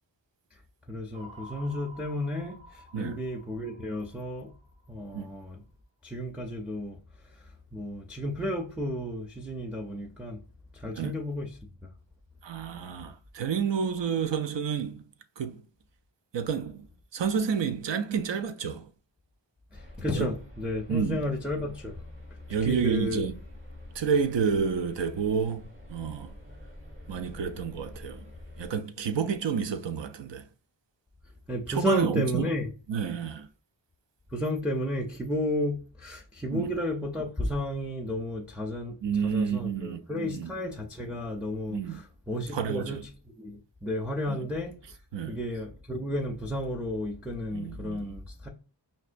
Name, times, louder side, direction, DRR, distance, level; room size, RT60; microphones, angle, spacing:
voice 1, 0.9-4.5 4.9-5.6 6.0-7.0 7.3-10.4 10.7-11.5 11.8-11.9 19.7-22.0 22.6-23.2 31.5-32.7 34.3-38.9 39.2-43.0 43.4-45.0 45.3-48.5, left 1 dB, 5° right, 0.5 m, -32 dB
sound 1, 1.1-5.4, equal, 85° right, 1.3 m, -51 dB
voice 2, 12.4-15.0 15.4-15.6 16.3-16.8 17.1-18.9 20.1-20.3 20.9-21.2 22.5-23.4 23.9-25.6 25.9-26.4 27.1-28.3 28.6-30.5 31.7-32.5 32.9-33.5 36.5-36.7 39.0-40.5 41.7-42.0 42.5-43.0 44.3-44.4 45.1-45.4 47.5-48.2, right 6 dB, 70° right, 0.5 m, -30 dB
sound 2, 19.7-28.7, left 1 dB, 25° right, 1.1 m, -46 dB
5.3 x 2.2 x 2.5 m
wide cardioid pair, 70°, 46 cm